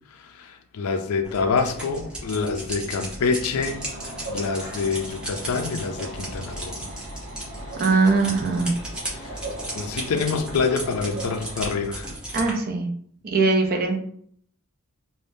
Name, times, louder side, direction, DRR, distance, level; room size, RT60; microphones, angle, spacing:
voice 1, 0.3-3.8 4.3-6.8 9.2-9.3 9.7-12.1, left 4 dB, 75° left, 0.4 m, -26 dB
sound 1, 1.2-12.5, right 1 dB, 5° right, 0.7 m, -36 dB
sound 2, 3.6-11.8, right 1 dB, 65° right, 1.0 m, -39 dB
voice 2, 7.8-8.7 12.3-12.9 13.2-14.0, right 3 dB, 45° right, 0.5 m, -21 dB
3.4 x 2.1 x 2.6 m
head